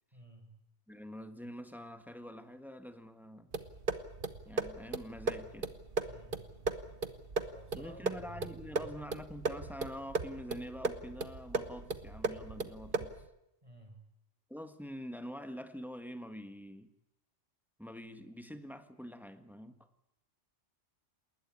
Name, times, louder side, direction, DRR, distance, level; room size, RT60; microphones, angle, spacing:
voice 1, 0.1-0.6 6.0-6.4 7.4-9.0 13.6-14.0, right 2 dB, 25° right, 4 dB, 6.1 m, -53 dB
voice 2, 0.9-3.5 4.4-5.8 7.7-13.2 14.5-16.9 17.8-19.9, equal, ahead, 8 dB, 1.6 m, -46 dB
sound 1, 3.5-13.3, right 3 dB, 45° right, 1.4 m, -37 dB
20.0 x 20.0 x 9.7 m, 0.85 s
omnidirectional pair, 1.3 m